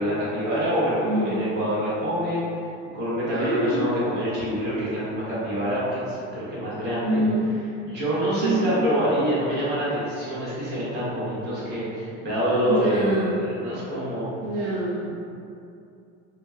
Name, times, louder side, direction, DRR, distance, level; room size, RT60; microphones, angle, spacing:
voice 1, 0.0-2.4 2.9-7.2 7.8-14.3, equal, 35° right, -9 dB, 1.0 m, -26 dB
voice 2, 1.0-1.4 3.3-3.9 7.0-7.5 8.4-8.7 12.6-13.4 14.4-15.1, right 1 dB, 65° right, -7 dB, 0.6 m, -25 dB
3.2 x 2.2 x 3.5 m, 2.5 s
cardioid pair, 180°, 29 cm